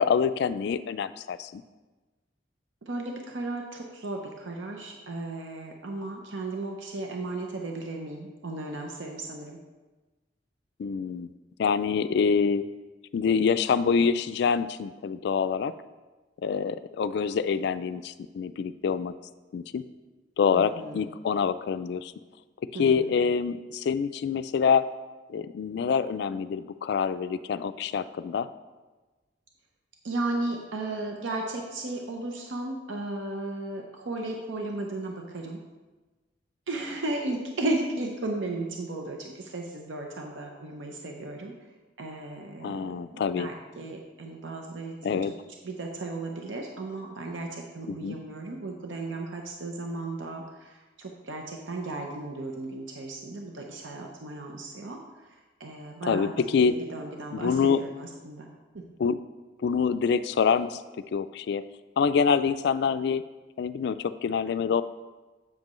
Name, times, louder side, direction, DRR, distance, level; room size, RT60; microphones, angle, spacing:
voice 1, 0.0-1.6 10.8-11.3 11.6-12.6 13.1-15.7 16.4-19.1 19.5-19.8 20.4-22.1 22.7-24.9 25.3-28.5 42.6-43.5 45.0-45.3 47.9-48.1 56.0-56.8 57.3-57.8 59.0-59.2 59.6-60.8 61.1-61.6 62.0-63.2 63.6-64.8, left 6 dB, 65° left, 13 dB, 0.3 m, -26 dB
voice 2, 2.8-9.6 20.5-21.1 22.7-23.2 30.0-35.6 36.7-41.5 42.0-45.3 45.6-55.0 55.6-58.5 58.7-58.9, right 2 dB, 90° right, 1 dB, 0.7 m, -35 dB
7.4 x 7.4 x 3.1 m, 1.2 s
head